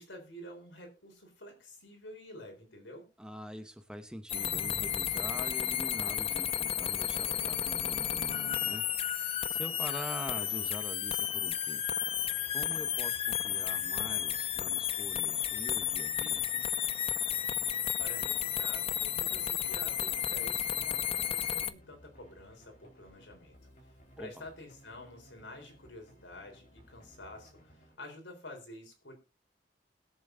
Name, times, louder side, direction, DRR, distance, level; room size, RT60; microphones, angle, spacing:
voice 1, 0.0-3.1 18.0-23.5 24.2-29.1, left 1 dB, 80° left, 3 dB, 3.8 m, -49 dB
voice 2, 3.2-11.8 12.5-16.6 24.2-24.4, equal, 5° right, 8 dB, 0.9 m, -45 dB
sound 1, 4.3-21.7, left 10 dB, 35° left, 0.5 m, -32 dB
sound 2, 12.1-27.9, equal, 50° left, 4.0 m, -59 dB
21.0 x 7.1 x 2.6 m, 0.27 s
head